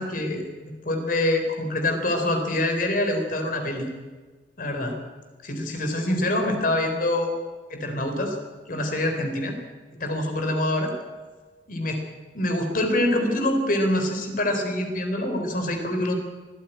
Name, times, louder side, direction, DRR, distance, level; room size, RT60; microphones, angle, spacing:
voice 1, 0.0-3.9 4.6-4.9 5.4-7.3 7.7-8.4 8.7-9.6 10.0-10.9 11.7-12.0 12.3-16.2, left 1 dB, 55° left, 5 dB, 3.8 m, -25 dB
24.0 x 13.5 x 9.2 m, 1.4 s
head